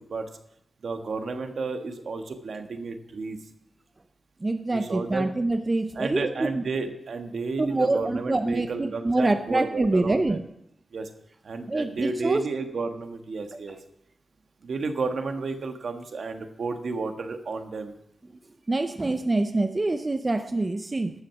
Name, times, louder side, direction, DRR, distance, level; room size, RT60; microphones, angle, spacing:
voice 1, 0.8-3.4 4.7-5.3 5.9-10.4 10.9-11.1 11.4-13.8 14.6-17.9, right 4 dB, 70° right, 6 dB, 1.4 m, -32 dB
voice 2, 4.4-6.6 7.6-10.4 11.7-12.4 18.7-21.1, right 2 dB, 30° right, 8 dB, 0.6 m, -25 dB
13.0 x 6.4 x 7.2 m, 0.79 s
wide cardioid pair, 100°, 0 cm